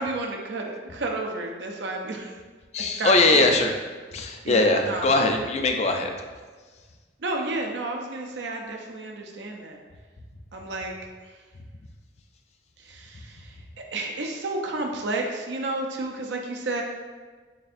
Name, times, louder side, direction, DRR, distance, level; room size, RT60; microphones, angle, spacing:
voice 1, 0.0-2.4 2.8-3.5 4.4-5.1 7.2-9.8 10.5-10.9 11.2-11.3 12.8-16.8, right 2 dB, 80° right, 1 dB, 0.5 m, -31 dB
voice 2, 2.7-3.7 4.1-6.1, left 2 dB, 35° left, 4 dB, 0.3 m, -21 dB
4.1 x 3.2 x 2.5 m, 1.4 s
head